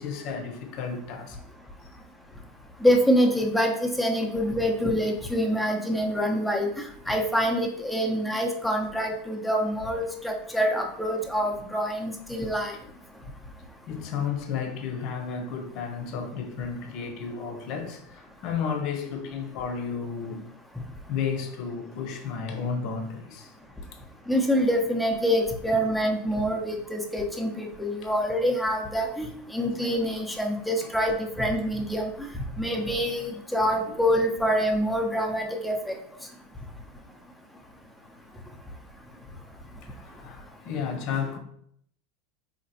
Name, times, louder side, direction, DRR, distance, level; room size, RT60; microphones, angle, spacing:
voice 1, 0.0-1.4 13.9-20.6 21.1-23.5 33.9-34.0 39.8-41.4, left 6 dB, 55° left, 0.7 m, -32 dB
voice 2, 2.8-12.7 24.3-32.3 32.6-35.9, equal, 5° left, 0.7 m, -26 dB
4.0 x 2.9 x 2.8 m
hypercardioid pair, 95°, 0 cm